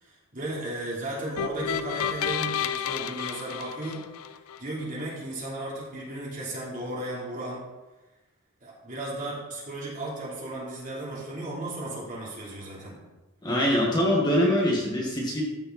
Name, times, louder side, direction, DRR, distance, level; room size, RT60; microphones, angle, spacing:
voice 1, 0.0-7.6 8.6-13.0, right 1 dB, 40° right, -6 dB, 3.5 m, -35 dB
sound 1, 1.4-4.6, left 8 dB, 80° left, 0.4 m, -31 dB
voice 2, 13.4-15.5, equal, 20° left, -4 dB, 1.7 m, -23 dB
14.0 x 5.8 x 4.1 m, 1.1 s
head